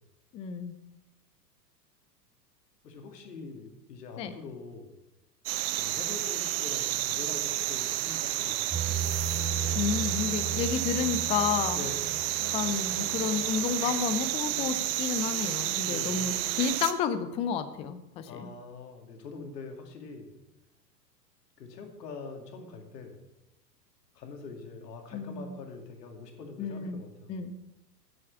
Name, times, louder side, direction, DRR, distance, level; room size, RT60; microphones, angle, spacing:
voice 1, 0.3-0.8 4.2-4.4 9.7-11.8 12.5-18.5 25.1-25.5 26.6-27.0 27.3-27.6, left 7 dB, 15° left, 11 dB, 0.4 m, -31 dB
voice 2, 2.8-4.9 5.7-9.1 11.7-12.1 15.8-16.3 18.3-20.4 21.6-23.2 24.1-27.4, left 4 dB, 70° left, 4 dB, 2.4 m, -44 dB
sound 1, 5.5-16.9, right 14 dB, 40° right, 0.9 m, -31 dB
sound 2, 8.7-16.6, right 5 dB, 20° right, 4.6 m, -37 dB
9.5 x 8.6 x 6.1 m, 0.98 s
hypercardioid pair, 100°, 50 cm